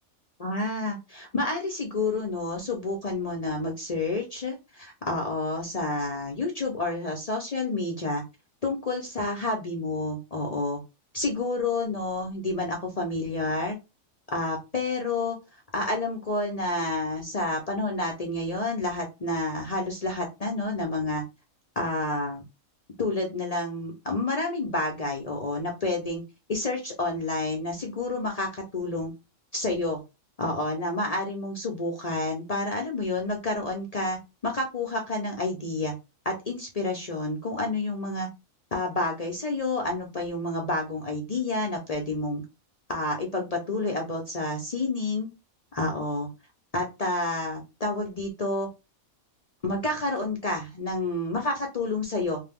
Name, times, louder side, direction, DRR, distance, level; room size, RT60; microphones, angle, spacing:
voice 1, 0.4-8.2 8.6-10.8 11.1-13.8 14.3-15.4 15.7-21.2 21.8-22.4 23.0-26.2 26.5-29.1 29.5-30.0 30.4-35.9 36.3-38.3 38.7-42.4 42.9-45.3 45.7-46.3 46.7-48.7 49.6-52.4, left 2 dB, 50° left, 1 dB, 0.4 m, -29 dB
2.6 x 2.2 x 3.4 m, 0.26 s
omnidirectional pair, 1.4 m